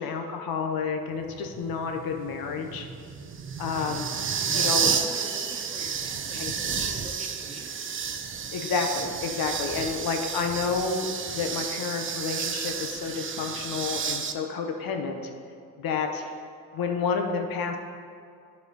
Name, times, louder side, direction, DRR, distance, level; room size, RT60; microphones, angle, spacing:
voice 1, 0.0-2.9 3.6-4.1 4.5-4.9 6.4-6.7 8.5-11.1 11.3-15.3 15.8-16.2 16.7-17.8, left 5 dB, 70° left, 4 dB, 0.9 m, -30 dB
sound 1, 1.2-14.3, right 6 dB, 35° right, 0.5 m, -31 dB
voice 2, 3.7-7.9 16.2-16.3, right 1 dB, 15° right, -2 dB, 1.3 m, -44 dB
12.0 x 4.3 x 4.1 m, 2.4 s
cardioid pair, 120°, 36 cm